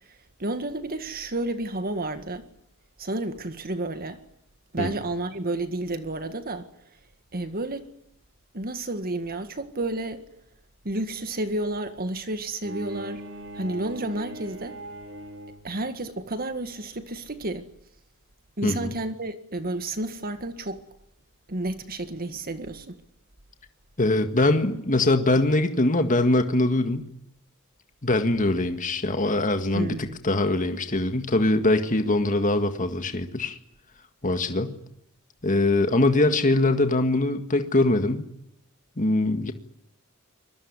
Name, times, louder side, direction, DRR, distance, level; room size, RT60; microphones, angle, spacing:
voice 1, 0.4-2.5 3.0-4.2 4.7-6.7 7.3-7.8 8.5-10.2 10.8-13.2 13.5-14.8 15.6-17.7 18.6-20.8 21.5-23.0 29.7-30.2, right 2 dB, 45° right, 1.8 m, -31 dB
Bowed string instrument, 12.6-15.8, right 1 dB, 60° right, 4.4 m, -40 dB
voice 2, 18.6-18.9 24.0-27.1 28.0-33.6 34.2-34.8 35.4-38.3 39.0-39.5, left 2 dB, 35° left, 1.9 m, -22 dB
25.5 x 22.0 x 9.8 m
head